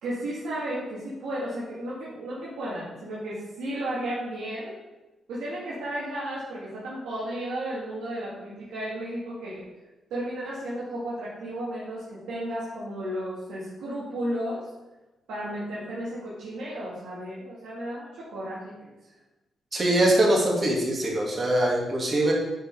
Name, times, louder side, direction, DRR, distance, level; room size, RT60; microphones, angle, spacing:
voice 1, 0.0-4.8 5.3-9.7 10.1-14.7 15.3-18.7, right 1 dB, 85° right, -8 dB, 2.1 m, -33 dB
voice 2, 19.7-22.3, right 1 dB, 35° right, -1 dB, 2.5 m, -22 dB
8.5 x 5.1 x 5.4 m, 1.0 s
cardioid pair, 70°, 0 cm